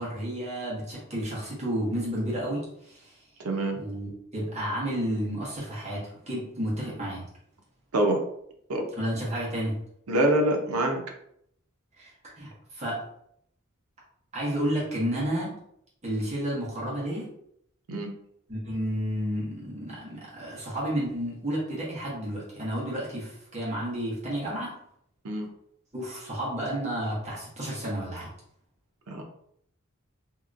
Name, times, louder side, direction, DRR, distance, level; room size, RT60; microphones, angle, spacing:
voice 1, 0.0-3.2 3.7-7.3 8.9-9.8 12.0-13.1 14.3-15.6 16.0-17.3 18.5-24.8 25.9-28.3, equal, 30° right, -7 dB, 1.3 m, -31 dB
voice 2, 3.4-3.8 7.9-8.2 8.7-8.9 10.1-11.0 17.9-18.1 25.2-25.5 29.1-29.2, right 1 dB, 90° right, 3 dB, 0.6 m, -25 dB
2.9 x 2.8 x 2.5 m, 0.71 s
head